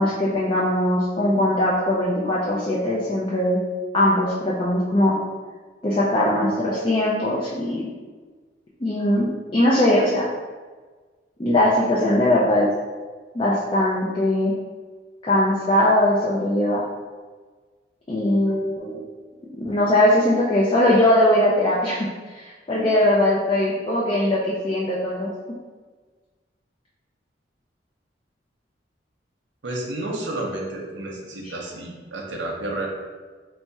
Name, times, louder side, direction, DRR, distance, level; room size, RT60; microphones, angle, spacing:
voice 1, 0.0-3.6 3.9-5.2 5.8-7.9 8.8-10.3 11.4-12.7 13.3-14.5 15.2-16.8 18.1-19.0 19.6-25.3, left 1 dB, 30° left, -5 dB, 0.4 m, -20 dB
voice 2, 29.6-32.9, right 1 dB, 85° right, -1 dB, 0.7 m, -31 dB
3.4 x 2.1 x 4.1 m, 1.4 s
head